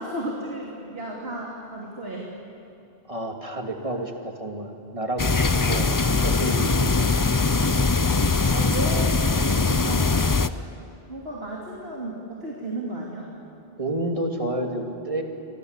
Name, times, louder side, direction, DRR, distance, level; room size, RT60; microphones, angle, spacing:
voice 1, 0.0-2.3 6.0-6.1 8.5-10.6 11.0-13.3, right 1 dB, 75° right, -2 dB, 3.2 m, -34 dB
voice 2, 3.1-7.1 13.8-15.2, right 1 dB, 35° right, 3 dB, 2.6 m, -30 dB
sound 1, 5.2-10.5, left 3 dB, 25° left, 0.6 m, -21 dB
28.5 x 25.0 x 8.2 m, 2.8 s
omnidirectional pair, 1.0 m